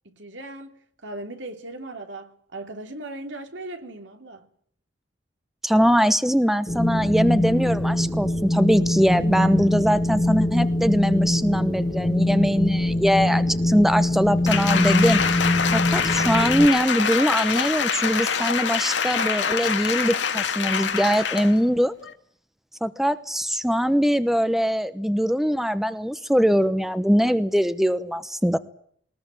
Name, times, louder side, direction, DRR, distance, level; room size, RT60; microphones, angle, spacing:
voice 1, 0.0-4.5, right 2 dB, 85° right, 3.2 m, -38 dB
voice 2, 5.6-15.4 15.7-21.9 22.8-28.6, equal, ahead, 0.9 m, -22 dB
Wind, 6.7-16.7, left 1 dB, 25° left, 1.4 m, -23 dB
Applause, 14.5-21.6 22.0-22.1, left 6 dB, 80° left, 2.1 m, -25 dB
21.0 x 20.0 x 9.2 m
head